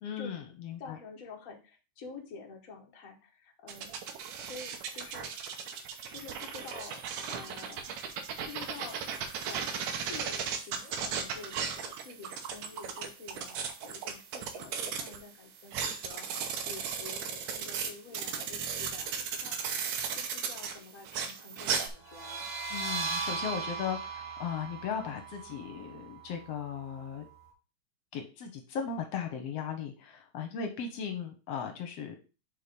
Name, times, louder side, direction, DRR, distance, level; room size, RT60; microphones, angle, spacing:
voice 1, 0.0-1.0 22.7-27.3 28.1-32.1, left 7 dB, 70° left, 5 dB, 1.6 m, -37 dB
voice 2, 0.8-3.9 4.4-5.3 6.1-7.9 8.5-9.0 9.4-22.5, left 4 dB, 85° left, 1 dB, 0.7 m, -48 dB
sound 1, 3.7-15.2 15.6-21.9, right 6 dB, 75° right, 2.4 m, -36 dB
sound 2, 22.0-27.4, right 4 dB, 50° right, 2.6 m, -38 dB
5.6 x 4.7 x 5.1 m, 0.32 s
omnidirectional pair, 3.7 m